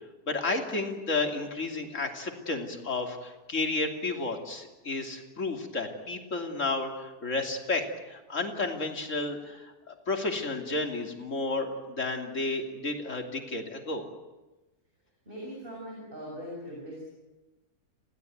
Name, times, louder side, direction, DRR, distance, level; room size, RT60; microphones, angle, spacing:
voice 1, 0.3-14.1, left 3 dB, 50° left, 3 dB, 3.2 m, -32 dB
voice 2, 15.3-17.0, equal, 35° right, -3 dB, 7.2 m, -40 dB
28.0 x 17.5 x 9.3 m, 1.1 s
omnidirectional pair, 1.6 m